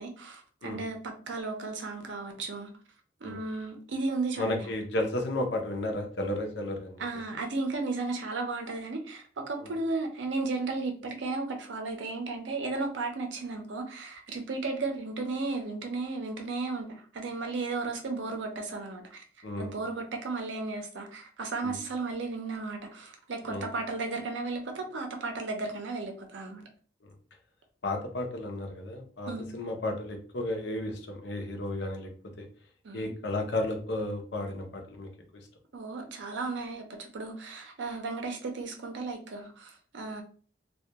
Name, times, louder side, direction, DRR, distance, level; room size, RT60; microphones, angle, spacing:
voice 1, 0.0-2.7 3.2-4.7 7.0-19.2 19.6-26.6 29.3-29.5 32.8-33.1 35.7-40.2, right 3 dB, 80° right, 0.5 m, -34 dB
voice 2, 4.4-7.0 9.6-9.7 19.4-19.7 21.6-21.8 23.5-23.7 27.8-32.1 32.4-32.5 32.9-35.1, left 1 dB, 70° left, 0.6 m, -33 dB
2.2 x 2.2 x 2.8 m
head